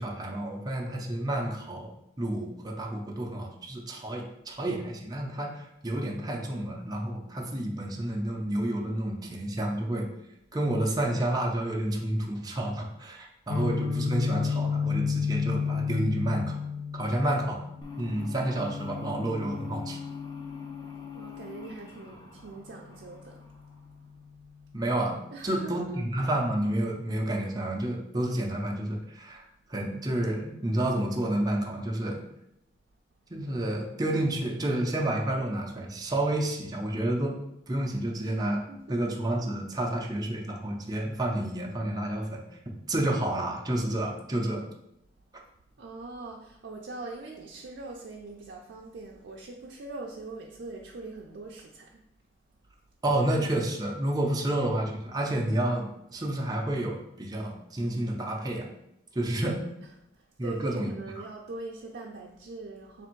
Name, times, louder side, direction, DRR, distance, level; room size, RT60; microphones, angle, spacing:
voice 1, 0.0-1.9 2.2-10.1 10.5-16.6 16.9-17.6 18.0-20.0 24.7-25.2 25.4-32.2 33.3-37.4 37.7-38.6 38.9-42.4 42.9-44.6 53.0-58.7 59.1-59.6 60.4-60.9, right 1 dB, 20° right, -1 dB, 0.5 m, -30 dB
Guitar, 13.5-21.3, left 6 dB, 80° left, 0.4 m, -32 dB
sound 1, 13.5-22.8 23.1-23.2, equal, 60° left, 1.4 m, -55 dB
sound 2, 17.8-24.2, left 5 dB, 25° left, 0.6 m, -44 dB
voice 2, 21.1-23.4 25.3-26.0 38.2-38.3 38.7-39.0 45.8-52.0 60.1-63.1, right 3 dB, 75° right, -2 dB, 0.4 m, -42 dB
3.4 x 2.5 x 4.4 m, 0.81 s
head